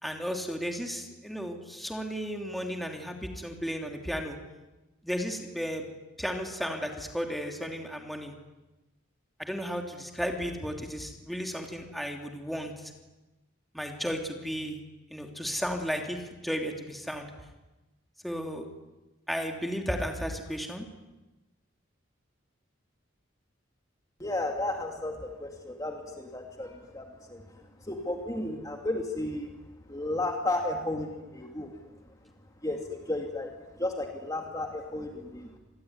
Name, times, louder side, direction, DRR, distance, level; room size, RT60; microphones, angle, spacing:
voice 1, 0.0-4.4 5.0-5.8 6.2-8.3 9.4-12.9 13.7-14.8 15.1-17.3 18.2-18.7 19.3-20.9, equal, ahead, 3 dB, 3.0 m, -34 dB
voice 2, 24.2-29.5 29.9-31.7 32.6-35.6, left 2 dB, 20° left, 3 dB, 2.6 m, -33 dB
27.0 x 21.0 x 9.7 m, 1.1 s
head